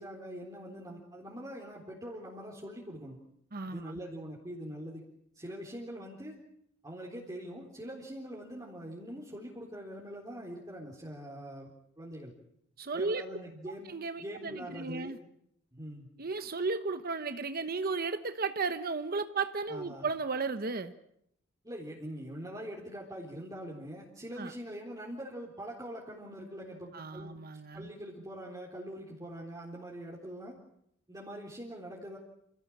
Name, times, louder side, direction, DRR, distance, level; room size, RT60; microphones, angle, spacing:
voice 1, 0.0-3.2 3.7-5.0 5.3-6.4 6.8-12.3 12.9-13.9 14.2-15.1 15.7-16.1 19.7-20.1 21.6-27.3 27.7-30.5 31.1-32.2, equal, 20° right, -4 dB, 4.0 m, -43 dB
voice 2, 3.5-3.8 12.8-13.2 13.9-15.2 16.2-20.9 24.4-24.5 26.9-27.9, right 4 dB, 50° right, 9 dB, 1.1 m, -34 dB
28.0 x 17.5 x 8.7 m, 0.75 s
head